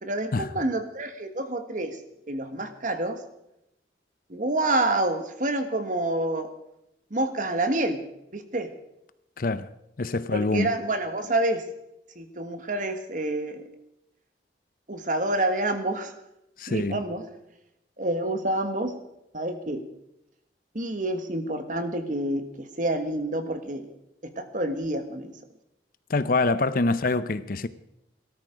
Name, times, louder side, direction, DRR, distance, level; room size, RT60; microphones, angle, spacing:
voice 1, 0.0-2.0 2.3-3.2 4.3-6.5 7.1-8.0 8.3-8.7 10.3-11.6 12.1-13.6 14.9-16.1 16.7-17.2 18.0-18.9 19.3-19.8 20.7-23.9 24.2-25.4, right 2 dB, 45° right, 1.5 m, -28 dB
voice 2, 9.4-9.7 10.0-10.7 16.6-17.0 26.1-27.7, left 3 dB, 50° left, 0.6 m, -25 dB
18.5 x 13.0 x 5.1 m
head